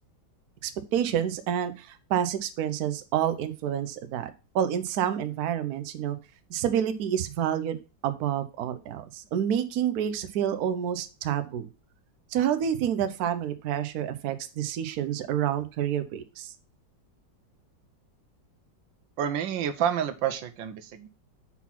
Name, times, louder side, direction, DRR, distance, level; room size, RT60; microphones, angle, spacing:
voice 1, 0.6-4.3 4.5-6.2 6.5-7.8 8.0-11.7 12.3-16.5, right 9 dB, 65° right, 10 dB, 1.1 m, -28 dB
voice 2, 19.2-21.1, right 9 dB, 85° right, 11 dB, 1.5 m, -29 dB
5.9 x 4.0 x 5.8 m, 0.32 s
omnidirectional pair, 2.0 m